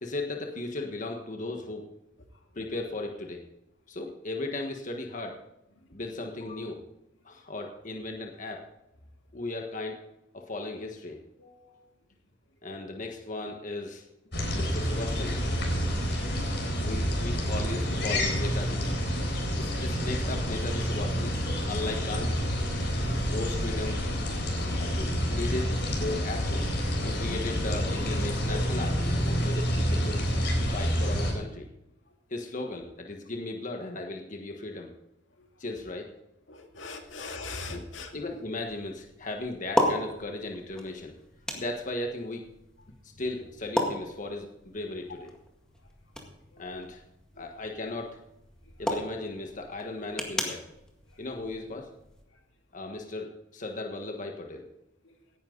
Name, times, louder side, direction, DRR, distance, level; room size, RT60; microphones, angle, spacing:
voice 1, 0.0-1.9 2.5-3.4 3.9-5.4 5.9-6.8 7.2-8.6 9.3-10.0 10.3-11.8 12.6-14.1 14.5-15.7 16.8-18.8 19.6-21.4 21.7-22.4 23.2-24.0 24.8-26.7 27.0-30.2 30.7-31.7 32.3-34.9 35.6-36.1 37.7-37.8 38.1-41.2 41.5-42.5 43.2-45.3 46.6-47.0 47.4-48.2 48.8-50.6 51.2-51.9 52.7-54.7, left 2 dB, 45° left, 3 dB, 1.4 m, -36 dB
sound 1, 14.3-31.3, equal, 65° left, 3.9 m, -28 dB
voice 2, 36.5-38.1 46.5-46.6 47.4-47.5 55.1-55.2, left 3 dB, 85° left, 3 dB, 2.1 m, -40 dB
sound 2, 37.0-52.2, equal, 5° left, 1.9 m, -36 dB
17.0 x 10.5 x 3.9 m, 0.87 s
head